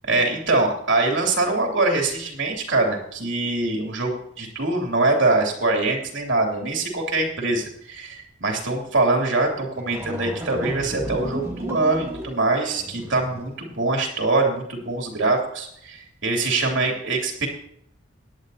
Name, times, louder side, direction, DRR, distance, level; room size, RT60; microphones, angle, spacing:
voice 1, 0.1-17.5, right 2 dB, 80° right, 0 dB, 2.9 m, -23 dB
sound 1, 9.4-9.5 9.8-13.5, equal, 15° right, 1.3 m, -34 dB
17.5 x 11.0 x 2.8 m, 0.71 s
head